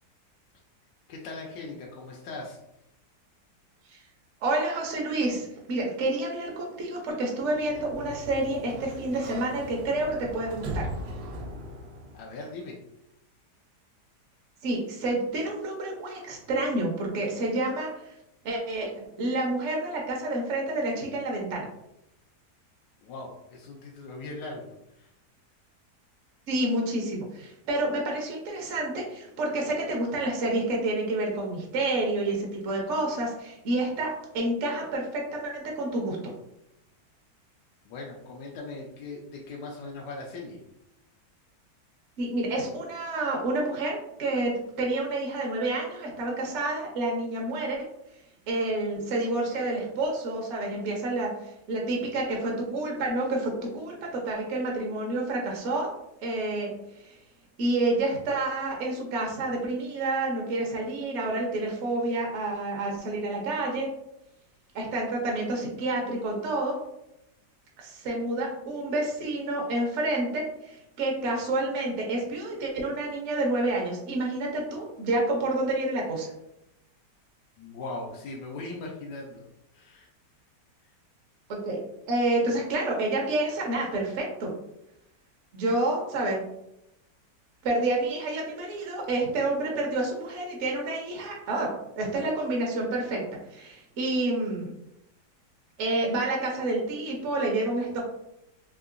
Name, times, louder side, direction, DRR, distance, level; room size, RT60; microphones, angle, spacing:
voice 1, 1.1-2.6 12.1-12.8 23.0-25.1 37.8-40.6 77.6-79.5 79.7-80.1 80.8-81.0, left 2 dB, 90° left, -2 dB, 1.2 m, -39 dB
voice 2, 4.4-10.9 14.6-18.1 18.4-21.7 26.5-36.3 42.2-47.9 48.5-55.9 56.2-57.2 57.6-63.9 64.7-66.8 67.8-76.3 81.5-81.8 82.1-84.6 85.5-86.4 87.6-94.7 95.8-98.0, right 2 dB, 60° right, -1 dB, 0.8 m, -29 dB
Sliding door, 7.4-12.3, right 1 dB, 75° right, 1.2 m, -39 dB
3.6 x 2.7 x 2.5 m, 0.85 s
omnidirectional pair, 1.8 m